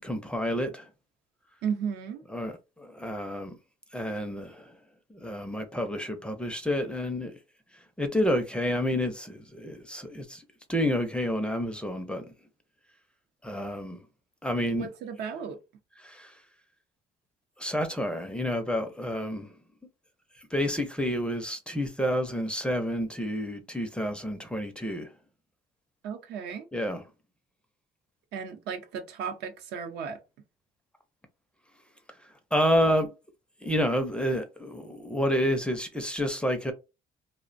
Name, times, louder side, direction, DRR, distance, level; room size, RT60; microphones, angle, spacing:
voice 1, 0.0-0.9 2.3-3.5 3.9-4.7 5.1-7.4 8.0-10.4 10.7-12.3 13.4-14.0 14.4-14.9 16.0-16.3 17.6-19.5 20.5-25.1 26.7-27.0 32.5-33.1 33.6-36.7, equal, 5° left, 0.4 m, -29 dB
voice 2, 1.6-2.2 14.8-15.6 26.0-26.7 28.3-30.2, right 7 dB, 75° right, 0.6 m, -34 dB
2.4 x 2.1 x 2.5 m
cardioid pair, 110°, 17 cm